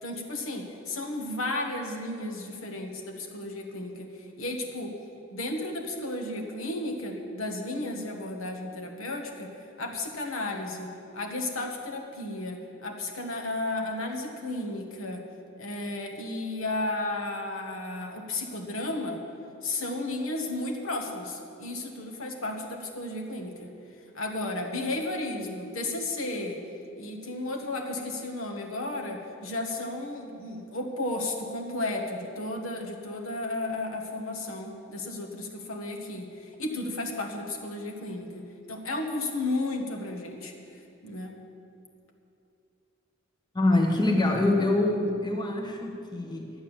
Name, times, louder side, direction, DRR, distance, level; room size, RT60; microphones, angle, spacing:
voice 1, 0.0-4.9 5.3-9.5 9.8-15.2 15.6-19.2 19.6-23.7 24.1-26.6 27.0-40.5 41.0-41.4, left 2 dB, 70° left, 2 dB, 1.4 m, -33 dB
voice 2, 43.5-46.5, left 2 dB, 20° left, 2 dB, 1.0 m, -25 dB
11.5 x 8.7 x 7.2 m, 2.7 s
head